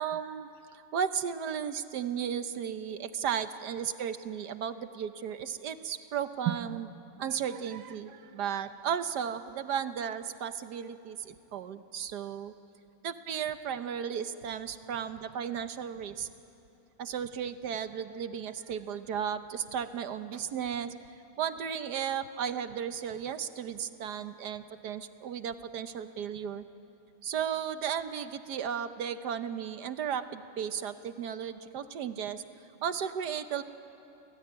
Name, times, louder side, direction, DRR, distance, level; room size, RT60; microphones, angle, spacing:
voice 1, 0.0-6.9 7.2-12.5 13.0-16.3 17.0-20.9 21.4-26.6 27.2-32.4 32.8-33.6, right 8 dB, 60° right, 10 dB, 1.2 m, -34 dB
29.0 x 17.5 x 9.5 m, 2.7 s
omnidirectional pair, 2.3 m